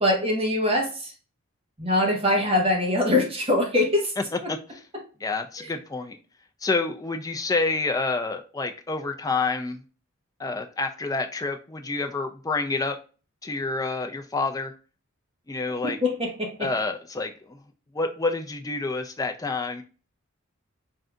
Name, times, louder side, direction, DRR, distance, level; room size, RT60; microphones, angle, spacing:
voice 1, 0.0-1.1 1.8-4.1 15.8-16.5, left 1 dB, 25° right, 0 dB, 1.0 m, -23 dB
voice 2, 4.2-4.8 5.2-6.2 6.6-9.8 10.4-13.0 13.4-14.7 15.5-16.0 16.6-17.6 17.9-19.8, left 3 dB, 15° left, 5 dB, 0.4 m, -28 dB
3.7 x 2.6 x 3.3 m, 0.36 s
head